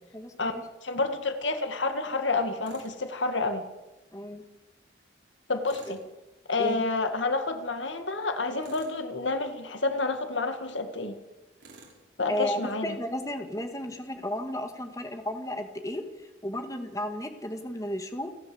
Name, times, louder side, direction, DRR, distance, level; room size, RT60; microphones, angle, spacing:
voice 1, 0.1-0.6 4.1-4.4 6.6-6.8 12.3-18.3, equal, 20° left, 5 dB, 1.9 m, -34 dB
voice 2, 0.8-3.7 5.5-6.0 6.5-11.2 12.2-13.0, left 3 dB, 85° left, 8 dB, 2.2 m, -29 dB
Tools, 2.6-3.0 5.6-6.1 8.6-9.0 11.6-12.0, right 3 dB, 75° right, 6.4 m, -50 dB
29.0 x 11.5 x 8.1 m, 1.1 s
head